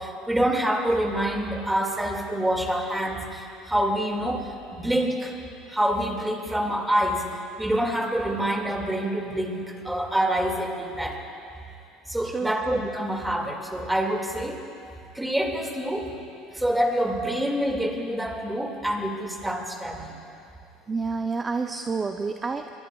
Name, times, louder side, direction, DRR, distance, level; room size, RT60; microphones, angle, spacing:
voice 1, 0.0-4.4 4.7-5.3 5.7-7.2 7.6-11.2 12.1-14.6 15.1-16.1 16.5-20.1, right 1 dB, 5° right, 2 dB, 2.1 m, -26 dB
voice 2, 20.9-22.7, right 4 dB, 25° right, 6 dB, 0.6 m, -29 dB
25.0 x 22.0 x 2.3 m, 2.6 s
supercardioid pair, 105°, 0 cm